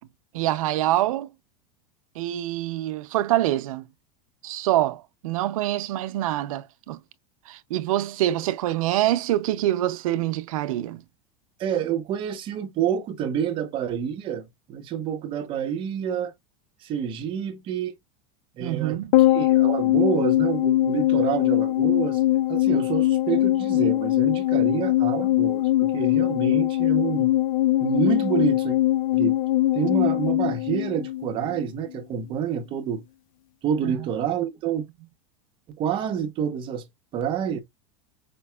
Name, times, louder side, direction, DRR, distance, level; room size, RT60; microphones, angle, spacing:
voice 1, 0.3-1.3 2.2-3.9 4.4-7.0 7.5-11.0 18.6-19.1 33.8-34.1, right 14 dB, 85° right, 0.6 m, -25 dB
voice 2, 11.6-16.3 16.8-17.9 18.6-19.0 19.3-27.3 27.8-28.8 29.1-29.4 29.7-33.0 33.6-34.9 35.8-36.8 37.1-37.6, right 8 dB, 30° right, 0.8 m, -28 dB
sound 1, 19.1-31.7 31.9-32.0, left 15 dB, 75° left, 0.4 m, -21 dB
5.2 x 2.7 x 2.3 m
supercardioid pair, 160°, 17 cm